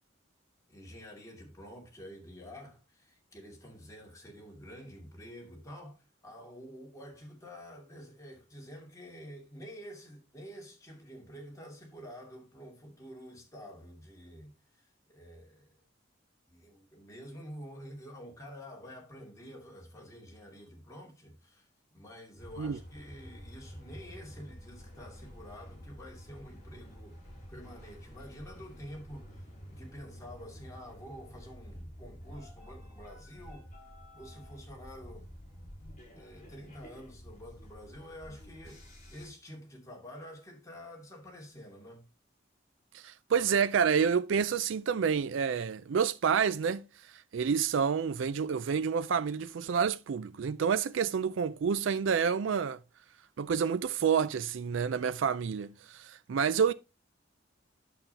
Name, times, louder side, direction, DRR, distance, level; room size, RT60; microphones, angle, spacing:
voice 1, 0.7-15.8 16.5-27.2 27.5-33.7 34.1-35.3 36.1-42.1, equal, 15° left, 2.6 m, -48 dB
sound 1, 22.4-39.3, equal, 40° left, 5.4 m, -50 dB
voice 2, 42.9-46.8 47.3-52.8 53.4-56.7, right 6 dB, 70° right, 0.4 m, -28 dB
9.0 x 7.2 x 2.9 m
head